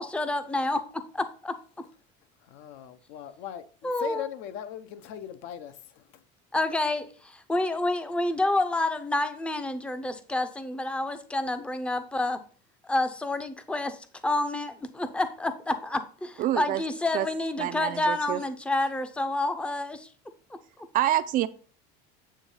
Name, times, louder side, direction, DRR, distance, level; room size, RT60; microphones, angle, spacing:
voice 1, 0.0-1.6 3.8-4.3 6.5-12.4 12.8-14.0 14.2-20.1, left 2 dB, 5° left, 0.6 m, -29 dB
voice 2, 2.5-6.0, left 10 dB, 65° left, 0.9 m, -39 dB
voice 3, 16.4-16.8 17.1-17.3 17.6-18.4 20.9-21.5, right 13 dB, 40° right, 0.4 m, -26 dB
8.8 x 3.1 x 5.5 m
cardioid pair, 140°, 21 cm